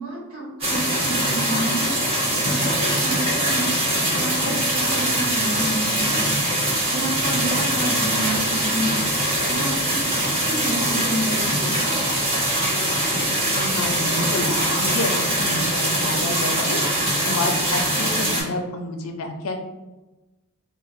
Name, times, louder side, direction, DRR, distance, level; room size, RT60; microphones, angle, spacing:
voice 1, 0.0-3.9 4.1-11.8, right 1 dB, 90° right, -6 dB, 1.0 m, -30 dB
sound 1, 0.6-18.4, right 1 dB, 30° right, 1.0 m, -22 dB
voice 2, 13.5-19.6, left 2 dB, 80° left, 4 dB, 0.5 m, -29 dB
4.0 x 2.1 x 2.6 m, 1.1 s
head